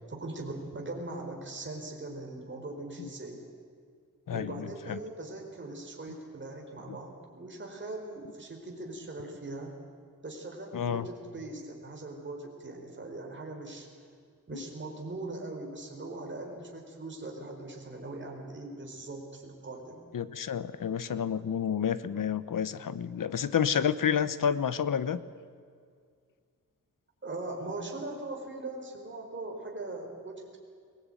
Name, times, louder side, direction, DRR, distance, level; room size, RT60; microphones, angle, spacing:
voice 1, 0.1-3.4 4.3-9.7 10.2-13.9 14.5-20.0 27.2-30.6, right 2 dB, 35° right, 0 dB, 4.7 m, -40 dB
voice 2, 4.3-5.0 10.7-11.0 14.5-14.6 20.1-25.2, left 8 dB, 70° left, 15 dB, 1.0 m, -30 dB
22.0 x 20.0 x 9.2 m, 2.2 s
wide cardioid pair, 95°, 33 cm